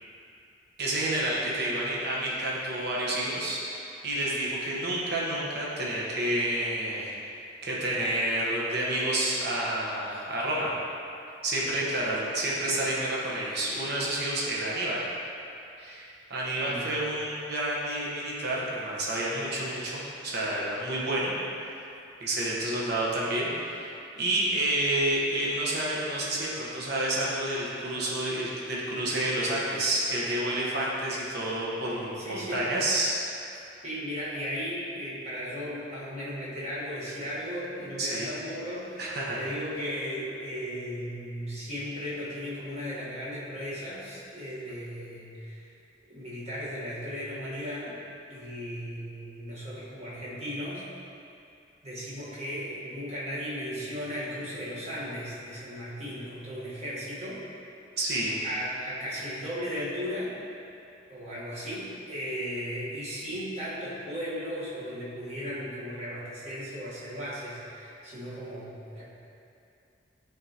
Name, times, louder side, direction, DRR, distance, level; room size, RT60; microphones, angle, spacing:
voice 1, 0.8-7.1 7.6-10.7 11.4-15.0 15.8-21.3 22.2-23.9 24.2-33.1 38.0-38.3 39.0-39.4 58.0-58.4, right 1 dB, 55° right, -5 dB, 1.1 m, -29 dB
voice 2, 16.6-16.9 32.2-32.7 33.8-39.1 39.3-45.7 46.1-47.9 48.3-50.8 51.8-57.4 58.4-60.4 61.1-69.1, equal, 35° right, -8 dB, 1.4 m, -36 dB
8.6 x 3.8 x 2.9 m, 2.6 s
head